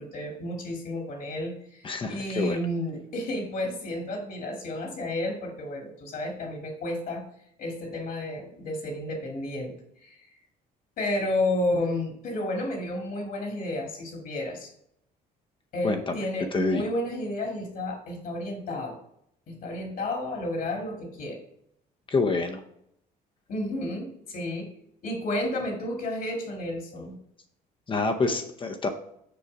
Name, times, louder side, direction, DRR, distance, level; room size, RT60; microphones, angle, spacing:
voice 1, 0.0-7.3 7.6-10.2 11.0-14.7 15.7-19.0 19.5-21.4 23.5-24.7 25.0-27.2, left 1 dB, 60° left, 2 dB, 2.1 m, -31 dB
voice 2, 1.8-2.6 15.8-16.2 16.5-16.8 22.1-22.6 27.9-28.9, left 3 dB, 30° left, 5 dB, 0.7 m, -27 dB
6.9 x 4.9 x 5.1 m, 0.73 s
cardioid pair, 110°, 17 cm